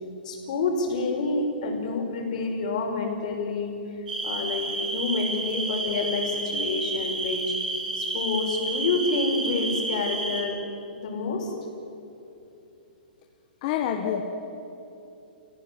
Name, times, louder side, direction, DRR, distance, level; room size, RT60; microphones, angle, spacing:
voice 1, 0.2-3.8 4.2-7.5 8.0-10.6 11.0-11.5 14.0-14.2, left 3 dB, 50° left, 2 dB, 5.4 m, -28 dB
sound 1, 4.1-10.4, right 2 dB, 70° right, 7.4 m, -30 dB
voice 2, 13.6-14.2, left 10 dB, 35° left, 3 dB, 1.5 m, -27 dB
27.5 x 17.0 x 9.9 m, 2.9 s
hypercardioid pair, 170°, 5 cm